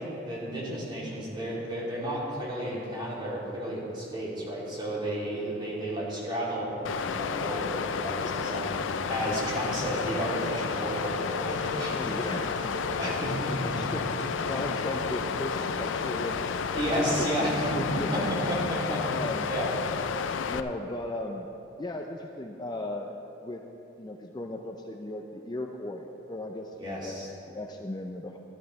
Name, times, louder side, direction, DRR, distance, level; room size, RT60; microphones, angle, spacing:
voice 1, 0.0-11.9 13.0-13.7 16.7-19.7 26.7-27.3, right 1 dB, 25° right, -6 dB, 2.8 m, -32 dB
Water, 6.8-20.6, left 6 dB, 80° left, 0.4 m, -31 dB
sound 1, 10.4-19.0, equal, 45° right, 1.2 m, -41 dB
voice 2, 11.9-13.0 13.5-14.1 14.5-16.4 16.9-18.2 19.1-19.5 20.4-21.5 21.8-23.1 23.4-23.6 24.0-27.1 27.5-28.4, left 1 dB, 20° left, 3 dB, 0.5 m, -36 dB
13.0 x 13.0 x 3.2 m, 3.0 s
head